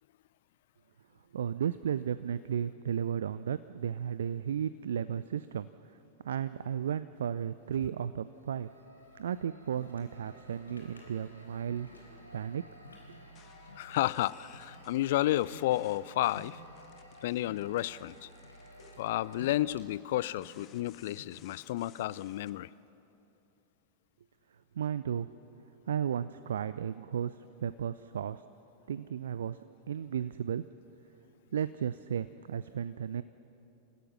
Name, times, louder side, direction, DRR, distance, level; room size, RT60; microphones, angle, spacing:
voice 1, 1.3-5.7 6.2-8.7 9.1-11.9 12.3-12.6 24.8-25.3 25.9-28.4 28.9-29.6 29.9-30.6 31.5-33.2, right 8 dB, 65° right, 15 dB, 0.4 m, -34 dB
sound 1, 8.1-19.7, right 1 dB, 85° right, 2.1 m, -55 dB
sound 2, 9.7-21.4, left 2 dB, 75° left, 3.4 m, -55 dB
sound 3, 13.3-22.5, left 9 dB, 35° left, 1.4 m, -61 dB
voice 2, 13.8-16.6 17.2-18.3 19.0-22.7, left 15 dB, 55° left, 20 dB, 0.4 m, -31 dB
29.0 x 16.0 x 6.0 m, 2.9 s
figure-of-eight pair, 90°, 0 cm